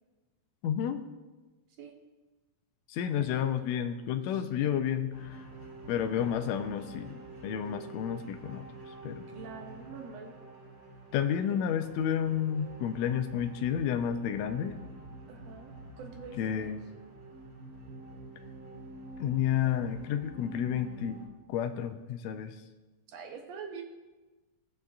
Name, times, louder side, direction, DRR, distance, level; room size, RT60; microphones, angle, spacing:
voice 1, 0.6-1.0 2.9-5.4 5.9-7.2 7.4-8.6 9.0-9.3 11.1-14.7 16.4-16.8 19.2-21.2 21.5-22.5, left 9 dB, 80° left, 6 dB, 1.8 m, -31 dB
sound 1, 5.1-21.3, right 2 dB, 50° right, 1.6 m, -47 dB
voice 2, 9.3-10.3 11.5-11.6 15.3-16.7 23.1-23.8, right 5 dB, 70° right, 3 dB, 2.0 m, -45 dB
18.0 x 6.1 x 2.5 m, 1.2 s
omnidirectional pair, 3.3 m